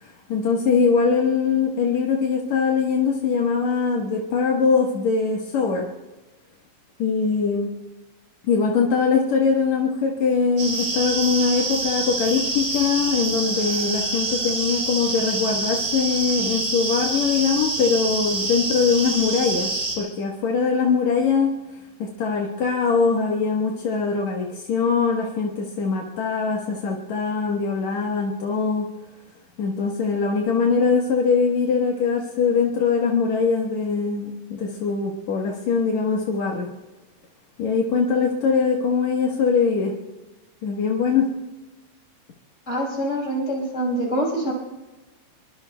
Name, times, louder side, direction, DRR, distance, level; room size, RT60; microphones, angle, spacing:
voice 1, 0.0-5.9 7.0-7.8 8.5-21.5 22.0-28.9 29.6-36.7 37.6-40.0 40.6-41.3, left 5 dB, 70° left, -2 dB, 2.6 m, -22 dB
sound 1, 10.6-20.0, right 2 dB, 40° right, 4.9 m, -26 dB
voice 2, 42.7-44.5, right 1 dB, 25° left, -4 dB, 5.4 m, -25 dB
26.5 x 22.5 x 2.3 m, 1.1 s
omnidirectional pair, 3.4 m